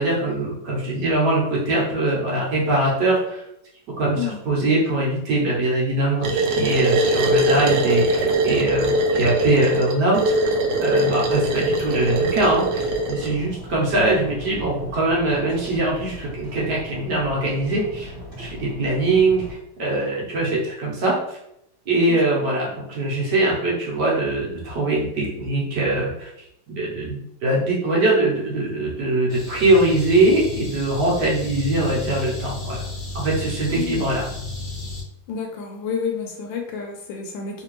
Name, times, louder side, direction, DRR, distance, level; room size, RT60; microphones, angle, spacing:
voice 1, 0.0-3.4 4.0-4.2 4.4-10.5 10.8-21.4 21.9-26.3 26.7-32.8 33.1-34.3, right 2 dB, 60° right, -4 dB, 1.4 m, -22 dB
sound 1, 6.2-13.3, right 1 dB, 80° right, 0.8 m, -21 dB
sound 2, 11.3-19.5, equal, 30° right, 1.5 m, -38 dB
sound 3, 29.3-35.0, left 2 dB, 55° left, 1.0 m, -33 dB
voice 2, 33.7-34.0 35.3-37.6, left 6 dB, 75° left, 2 dB, 1.3 m, -30 dB
3.3 x 2.9 x 3.0 m, 0.80 s
omnidirectional pair, 2.2 m